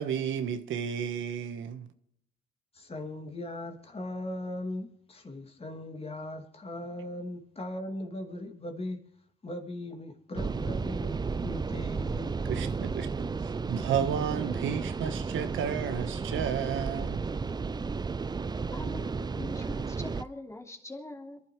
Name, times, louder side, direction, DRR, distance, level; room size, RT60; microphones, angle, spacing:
voice 1, 0.0-1.9 12.5-17.2, right 8 dB, 80° right, 1.3 m, -32 dB
voice 2, 2.7-9.0 9.4-12.4, left 1 dB, 30° left, 2.6 m, -39 dB
sound 1, 10.4-20.2, right 4 dB, 20° right, 0.5 m, -33 dB
voice 3, 18.7-21.4, left 2 dB, 15° left, 3.0 m, -43 dB
27.5 x 11.5 x 3.2 m
cardioid pair, 90°, 20 cm